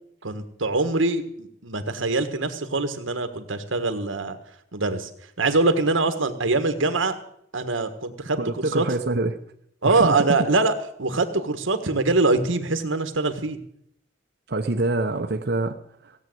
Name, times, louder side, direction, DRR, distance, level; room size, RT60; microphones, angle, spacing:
voice 1, 0.2-4.4 4.7-5.1 5.4-7.2 7.5-8.8 9.8-13.6, right 3 dB, 90° right, 8 dB, 1.6 m, -23 dB
voice 2, 8.4-9.3 9.8-10.4 14.5-15.8, right 2 dB, 60° right, 2 dB, 0.9 m, -25 dB
17.0 x 8.2 x 7.9 m, 0.70 s
head